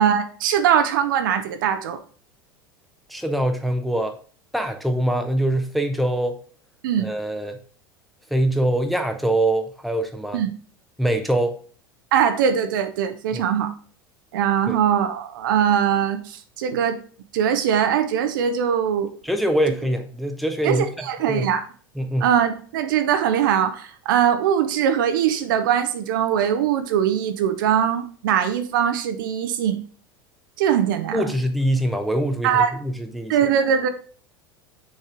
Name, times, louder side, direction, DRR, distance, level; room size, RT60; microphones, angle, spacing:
voice 1, 0.0-2.0 6.8-7.1 10.3-10.5 12.1-13.7 14.3-17.0 17.3-19.1 20.6-21.6 22.2-29.8 30.6-31.3 32.4-32.7 33.3-33.9, right 8 dB, 65° right, 0.7 m, -21 dB
voice 2, 3.1-4.2 4.5-6.4 7.0-7.6 8.3-10.4 11.0-11.6 13.3-13.4 14.7-14.8 19.2-21.5 22.0-22.3 31.1-33.4, right 1 dB, ahead, 0.9 m, -23 dB
6.4 x 4.3 x 3.6 m
figure-of-eight pair, 80°, 12 cm